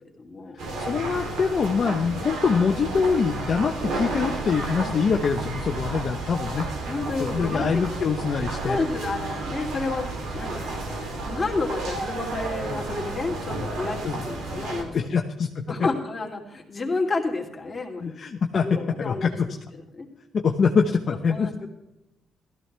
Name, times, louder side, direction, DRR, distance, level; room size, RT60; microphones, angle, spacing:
voice 1, 0.2-0.7 6.9-7.8 8.6-10.7 11.2-15.1 15.7-18.2 18.6-19.4 19.9-20.1 21.3-21.5, left 3 dB, 25° left, -1 dB, 2.9 m, -30 dB
sound 1, 0.6-14.8, right 3 dB, 80° right, 3.1 m, -32 dB
voice 2, 0.8-6.7 7.2-8.8 13.9-14.2 14.9-15.7 18.0-19.6 20.3-21.5, left 5 dB, 50° left, 3 dB, 0.9 m, -24 dB
16.0 x 13.5 x 3.4 m, 0.94 s
cardioid pair, 90°, 0 cm